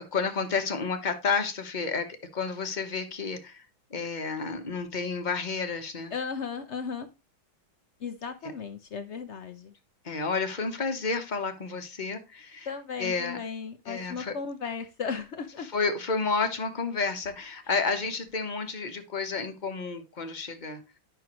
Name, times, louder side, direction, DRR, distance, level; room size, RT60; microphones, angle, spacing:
voice 1, 0.1-2.1 2.3-6.1 8.4-8.5 10.0-12.7 13.0-13.4 13.9-14.3 15.6-20.8, left 4 dB, 35° left, 0.8 m, -31 dB
voice 2, 6.1-7.1 8.0-9.7 12.7-15.7, left 5 dB, 70° left, 0.6 m, -35 dB
10.5 x 5.9 x 3.0 m
omnidirectional pair, 2.1 m